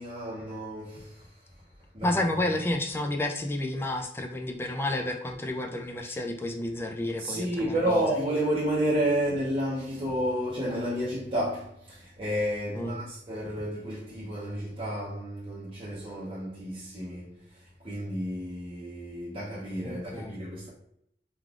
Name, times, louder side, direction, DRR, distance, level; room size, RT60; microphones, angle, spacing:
voice 1, 0.0-1.4 1.9-2.2 6.0-6.2 7.2-20.7, right 1 dB, 30° right, 0.7 m, -31 dB
voice 2, 2.0-8.0 12.7-13.0 19.8-20.4, left 1 dB, 15° left, 0.3 m, -31 dB
3.3 x 2.4 x 2.4 m
head